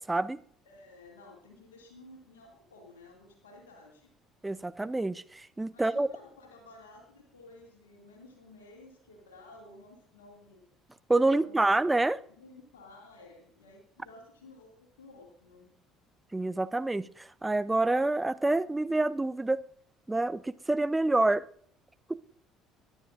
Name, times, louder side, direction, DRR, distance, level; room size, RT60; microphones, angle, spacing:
voice 1, 0.1-0.4 4.4-6.1 11.1-12.2 16.3-19.6 20.1-21.4 22.1-22.2, right 2 dB, 15° right, 16 dB, 0.6 m, -27 dB
voice 2, 0.6-4.1 5.7-10.6 11.3-11.9 12.3-15.7, left 2 dB, 75° left, 0 dB, 2.3 m, -53 dB
22.5 x 10.0 x 2.5 m, 0.63 s
figure-of-eight pair, 55°, 0 cm